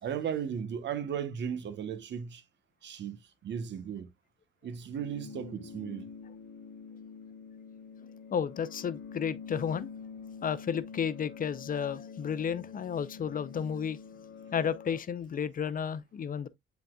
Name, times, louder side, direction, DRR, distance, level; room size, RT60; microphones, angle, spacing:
voice 1, 0.0-2.4 2.8-4.1 4.6-6.1, right 8 dB, 65° right, 1.1 m, -36 dB
sound 1, 5.0-15.0, left 6 dB, 60° left, 1.0 m, -46 dB
voice 2, 8.3-9.9 10.4-14.0 14.5-16.5, left 7 dB, 45° left, 0.6 m, -32 dB
10.0 x 4.1 x 2.3 m
cardioid pair, 90°, 20 cm